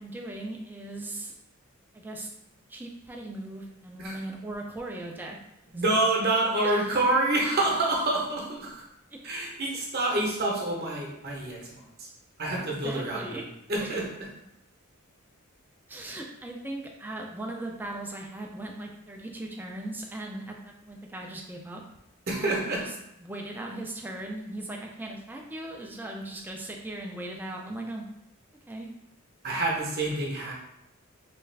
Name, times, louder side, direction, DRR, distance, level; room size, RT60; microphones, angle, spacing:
voice 1, 0.0-1.3 1.9-2.3 2.7-5.4 5.7-6.0 6.6-7.0 9.1-9.2 12.6-13.4 13.8-13.9 15.9-21.8 22.4-22.9 23.2-28.1 28.7-28.9, right 1 dB, 10° right, 0 dB, 0.3 m, -38 dB
voice 2, 5.7-8.8 9.2-12.1 12.4-13.4 13.7-14.1 22.3-22.8 29.4-30.5, right 2 dB, 45° right, -2 dB, 0.8 m, -27 dB
3.3 x 2.3 x 3.3 m, 0.85 s
head